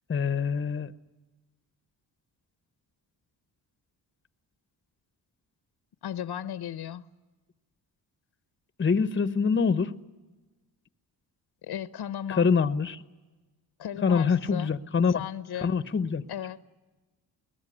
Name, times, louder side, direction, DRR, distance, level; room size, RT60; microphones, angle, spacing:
voice 1, 0.1-0.9 8.8-10.0 12.4-13.0 14.0-15.2 15.6-16.2, left 5 dB, 30° left, 0.9 m, -25 dB
voice 2, 6.0-7.1 11.6-12.5 13.8-14.7 15.1-15.8 16.3-16.6, left 10 dB, 65° left, 0.9 m, -36 dB
21.5 x 19.5 x 9.9 m
cardioid pair, 70°, 42 cm